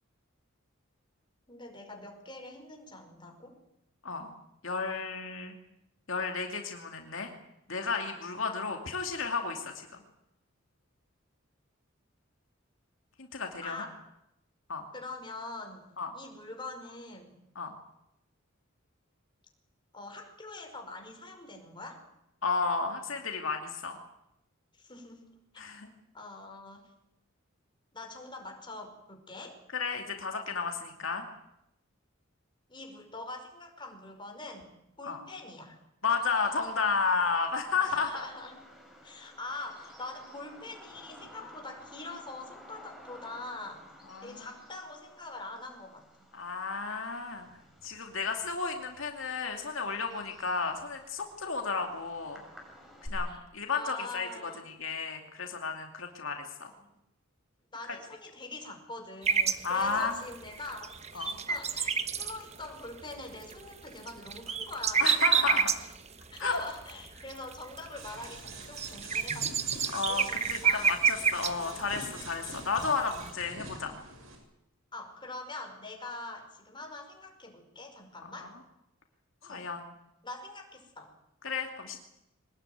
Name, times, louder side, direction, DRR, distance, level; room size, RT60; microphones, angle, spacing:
voice 1, 1.5-3.6 13.6-14.0 14.9-15.9 16.1-17.4 19.9-22.0 24.7-25.3 25.5-25.6 26.1-26.9 27.9-29.6 32.7-34.7 35.0-35.8 37.8-38.7 39.0-43.8 44.2-46.0 53.3-53.4 53.7-54.6 56.8-56.9 57.7-65.8 66.3-71.0 74.9-78.6 79.4-79.7 80.2-81.1, left 2 dB, 25° left, 3 dB, 5.1 m, -44 dB
voice 2, 4.6-5.5 6.1-7.3 7.7-10.0 13.2-13.9 14.7-14.8 16.0-16.1 17.5-17.7 22.4-24.0 25.6-25.9 29.7-31.3 35.0-35.2 36.0-38.3 44.1-44.5 46.3-47.5 47.8-52.4 53.1-54.3 54.6-56.7 59.6-60.2 61.1-61.3 65.0-65.7 66.4-66.6 69.9-73.9 78.2-78.3 79.4-79.9 81.4-82.0, left 4 dB, 70° left, 3 dB, 2.6 m, -32 dB
Bird vocalization bird call bird song, 36.1-53.1, equal, ahead, 6.1 m, -54 dB
sound 1, 59.2-73.3, right 6 dB, 30° right, 1.3 m, -29 dB
sound 2, 68.0-74.4, right 3 dB, 80° right, 6.8 m, -45 dB
23.5 x 19.5 x 9.3 m, 0.84 s
head